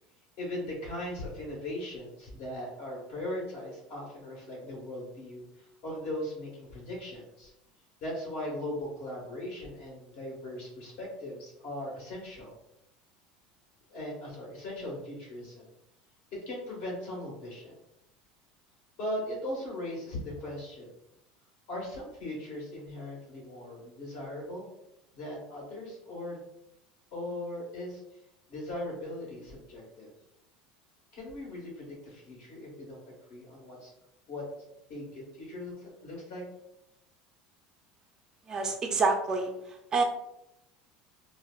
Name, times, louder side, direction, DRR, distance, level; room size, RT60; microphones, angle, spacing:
voice 1, 0.4-7.5 8.0-12.5 13.9-15.7 16.3-17.8 19.0-20.9 21.7-24.7 25.1-26.4 27.1-28.2 28.5-30.1 31.1-33.9 34.3-34.5 34.9-36.4, left 1 dB, 55° left, -3 dB, 1.5 m, -39 dB
voice 2, 38.5-39.5 39.9-40.0, right 4 dB, 25° right, 4 dB, 0.3 m, -27 dB
4.2 x 2.0 x 2.3 m, 0.83 s
supercardioid pair, 145°, 3 cm